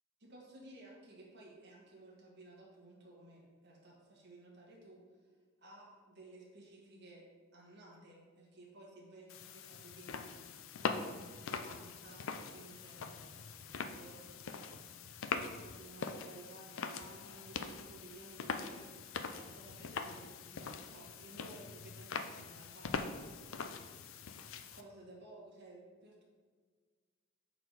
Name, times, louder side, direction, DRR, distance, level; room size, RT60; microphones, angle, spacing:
voice 1, 0.2-5.3 5.6-7.3 7.5-15.0 15.4-23.5 24.7-26.2, right 2 dB, 55° right, -3 dB, 1.7 m, -56 dB
sound 1, 9.3-24.8, left 5 dB, 70° left, 0.4 m, -43 dB
6.8 x 4.1 x 4.8 m, 1.5 s
head